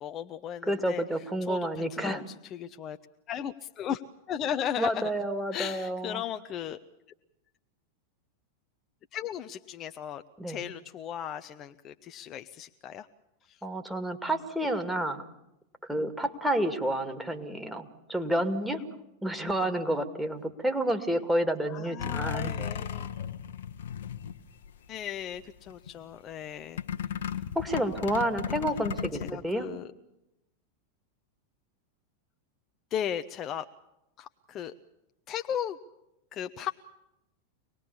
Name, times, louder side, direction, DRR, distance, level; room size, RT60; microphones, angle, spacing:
voice 1, 0.0-1.0 1.5-1.6 1.9-3.0 3.3-4.0 4.3-5.1 5.5-6.8 9.1-13.1 13.5-13.6 21.7-23.1 24.9-26.8 27.8-28.4 29.2-29.9 32.9-33.7 34.2-34.7 35.3-35.8 36.3-36.7, left 9 dB, 30° left, 8 dB, 0.8 m, -36 dB
voice 2, 0.7-2.2 4.8-6.2 10.4-10.6 13.6-15.2 15.8-18.8 19.2-22.5 27.5-29.7, right 1 dB, 5° right, 4 dB, 2.3 m, -30 dB
sound 1, 22.0-25.0 25.3-25.9 26.8-29.3, left 8 dB, 60° left, 1.2 m, -35 dB
25.0 x 20.0 x 7.1 m, 0.88 s
figure-of-eight pair, 90°, 0 cm